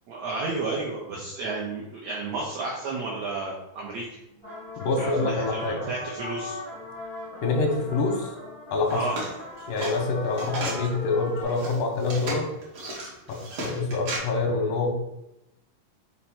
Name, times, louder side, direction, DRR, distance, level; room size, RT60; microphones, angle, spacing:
voice 1, 0.1-4.1 5.0-6.6 8.9-9.2, right 3 dB, 80° right, -4 dB, 1.5 m, -32 dB
sound 1, 4.3-11.4, left 2 dB, 35° left, 0.6 m, -38 dB
voice 2, 4.8-5.8 7.4-8.4 8.7-9.0 9.7-12.5 13.3-13.4 13.6-14.9, left 3 dB, 85° left, 2 dB, 2.4 m, -26 dB
sound 2, 8.8-10.9 11.4-14.2, right 1 dB, 65° right, 1.2 m, -34 dB
5.7 x 2.1 x 4.2 m, 0.88 s
omnidirectional pair, 3.8 m